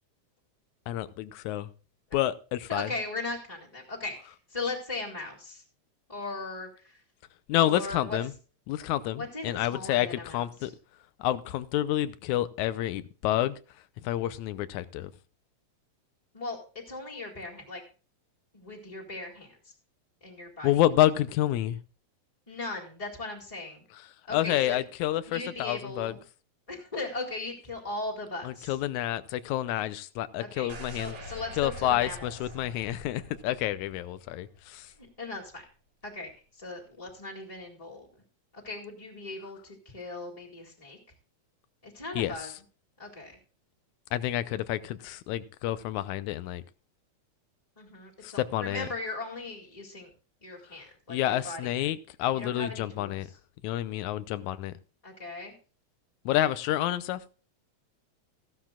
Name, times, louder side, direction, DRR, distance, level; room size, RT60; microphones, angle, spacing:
voice 1, 0.9-1.7 2.1-2.9 7.5-8.3 8.7-10.7 11.2-13.6 14.0-15.1 20.6-21.8 24.3-26.2 28.4-31.2 31.6-34.9 42.2-42.5 44.1-46.6 48.2-48.9 51.1-53.3 53.6-54.7 56.3-57.2, left 13 dB, 85° left, 2.1 m, -29 dB
voice 2, 2.7-5.6 6.1-7.0 7.6-8.2 9.1-10.7 16.3-17.8 18.5-19.7 20.2-20.7 22.5-23.8 24.3-24.8 25.3-26.2 26.7-28.7 30.4-32.3 35.2-35.6 36.0-38.1 38.5-41.0 41.8-42.5 43.0-43.3 47.8-50.1 50.4-51.7 52.3-53.2 55.0-55.5, left 2 dB, 15° left, 1.8 m, -38 dB
sound 1, 30.7-34.7 35.0-35.1, equal, 55° right, 4.4 m, -45 dB
15.0 x 12.0 x 2.4 m
omnidirectional pair, 3.4 m